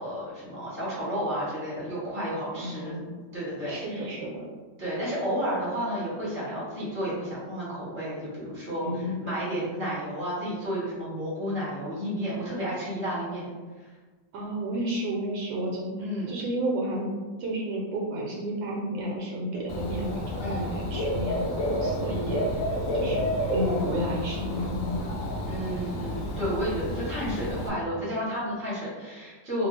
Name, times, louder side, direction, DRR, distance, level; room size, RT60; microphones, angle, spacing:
voice 1, 0.0-2.9 3.3-4.1 4.8-13.5 13.8-13.9 16.0-16.3 20.4-20.7 22.1-22.3 25.4-29.7, equal, 10° right, -9 dB, 1.0 m, -32 dB
voice 2, 2.5-3.1 3.7-4.5 8.8-9.2 14.3-16.0 16.3-17.1 17.4-21.4 21.8-22.6 22.9-25.0, right 1 dB, 80° right, -2 dB, 1.3 m, -32 dB
Dog / Bird, 19.7-27.7, equal, 80° left, 0.7 m, -30 dB
2.9 x 2.3 x 3.2 m, 1.4 s
omnidirectional pair, 2.0 m